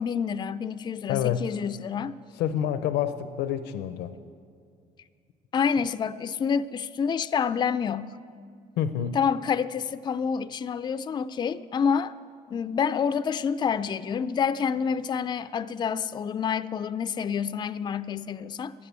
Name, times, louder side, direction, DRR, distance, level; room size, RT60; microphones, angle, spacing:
voice 1, 0.0-2.1 5.5-8.2 9.1-12.1 12.5-18.7, left 6 dB, 25° left, 0.4 m, -28 dB
voice 2, 1.1-1.4 2.4-4.1 8.8-9.2, left 10 dB, 90° left, 0.7 m, -27 dB
12.5 x 8.6 x 9.2 m
cardioid pair, 110°, 17 cm